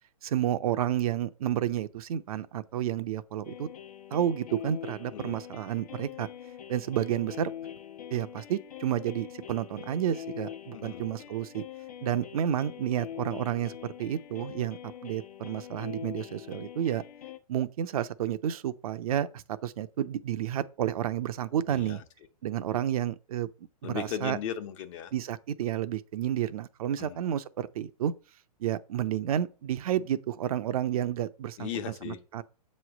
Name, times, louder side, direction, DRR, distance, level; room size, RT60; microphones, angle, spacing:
voice 1, 0.2-3.7 4.1-6.3 6.7-7.5 8.1-11.6 12.0-17.0 17.5-22.0 22.4-23.5 23.8-24.4 25.1-28.1 28.6-31.7 32.0-32.4, right 10 dB, 65° right, 0.6 m, -30 dB
sound 1, 3.4-17.4, left 11 dB, 75° left, 1.1 m, -43 dB
voice 2, 10.7-11.1 21.7-22.0 23.8-25.1 27.0-27.2 31.6-32.2, left 9 dB, 50° left, 1.1 m, -37 dB
7.8 x 3.2 x 6.0 m
hypercardioid pair, 135°, 20 cm